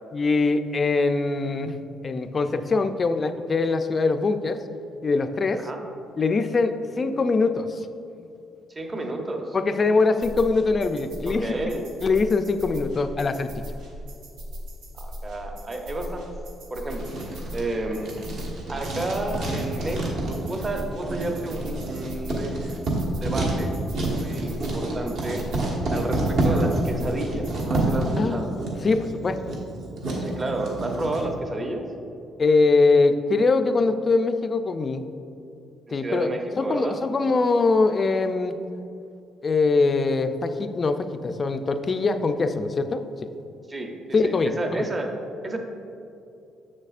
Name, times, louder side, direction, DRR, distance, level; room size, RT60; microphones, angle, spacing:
voice 1, 0.1-1.8 2.0-4.6 5.0-5.6 6.2-7.9 9.5-11.6 12.0-13.5 28.1-28.5 28.8-29.6 32.4-35.1 35.9-36.3 36.6-38.5 39.4-43.0 44.1-44.9, left 3 dB, 30° left, 9 dB, 0.3 m, -22 dB
voice 2, 8.7-9.6 11.3-11.8 14.9-16.3 16.7-17.1 17.5-18.1 18.7-22.8 23.2-23.7 24.1-25.4 25.9-28.5 30.2-31.8 35.9-37.0 43.7-45.1 45.4-45.6, right 2 dB, 25° right, 3 dB, 0.7 m, -31 dB
sound 1, 10.2-28.2, equal, 90° right, 1.1 m, -38 dB
Writing, 16.9-31.2, right 2 dB, 65° right, 1.3 m, -28 dB
7.1 x 6.5 x 2.4 m, 2.7 s
cardioid pair, 120°, 0 cm